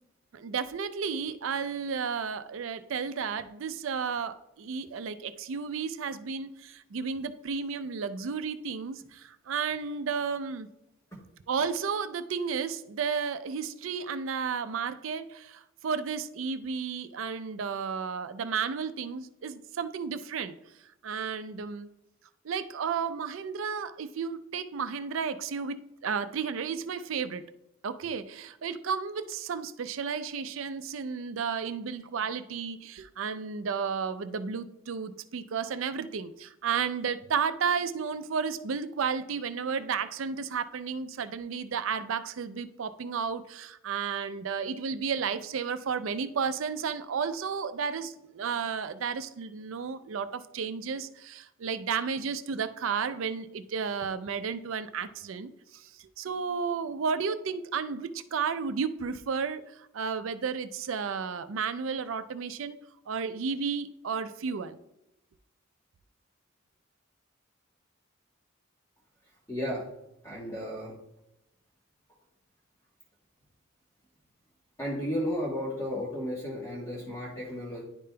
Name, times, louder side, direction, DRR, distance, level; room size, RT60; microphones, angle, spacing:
voice 1, 0.3-10.7 11.5-20.5 21.0-21.9 22.4-27.5 27.8-62.8 63.1-64.8, right 6 dB, 75° right, 0.4 m, -33 dB
voice 2, 69.5-69.8 70.2-70.9 74.8-77.8, equal, 15° left, 1.2 m, -33 dB
10.5 x 5.1 x 2.2 m
head